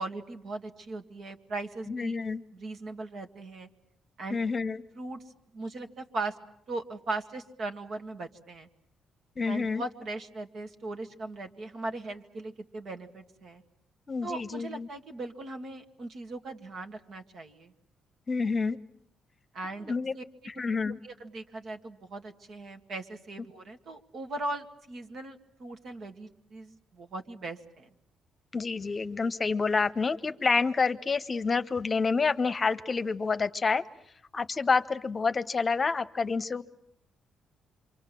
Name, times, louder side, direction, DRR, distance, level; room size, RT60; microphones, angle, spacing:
voice 1, 0.0-2.2 2.5-3.7 4.2-4.4 4.9-5.2 5.5-6.4 6.7-8.7 9.5-13.6 14.2-17.7 19.5-20.2 21.0-27.9, right 2 dB, 60° right, 4 dB, 2.1 m, -39 dB
voice 2, 1.9-2.4 4.3-4.8 9.4-9.8 14.1-14.9 18.3-18.8 19.9-20.1 20.6-21.0 28.5-33.8 34.3-36.6, left 4 dB, 35° left, 12 dB, 1.0 m, -28 dB
27.0 x 24.5 x 7.7 m, 0.74 s
cardioid pair, 90°, 0 cm